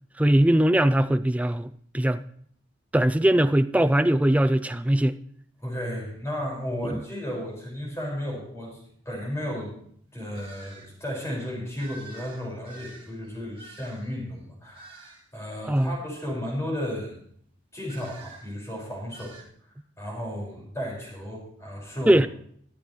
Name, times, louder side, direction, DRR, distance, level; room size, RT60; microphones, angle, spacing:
voice 1, 0.2-2.2 2.9-5.2 6.8-7.0 15.7-16.0 22.1-22.3, right 1 dB, 5° right, 0.4 m, -21 dB
voice 2, 5.6-9.8 10.1-17.2 17.7-19.4 20.0-22.2, equal, 15° left, 5.3 m, -34 dB
sound 1, 10.3-10.9 11.8-14.1 14.7-15.3 17.9-18.5 19.1-19.4, right 2 dB, 30° right, 2.7 m, -47 dB
24.0 x 8.4 x 3.2 m
head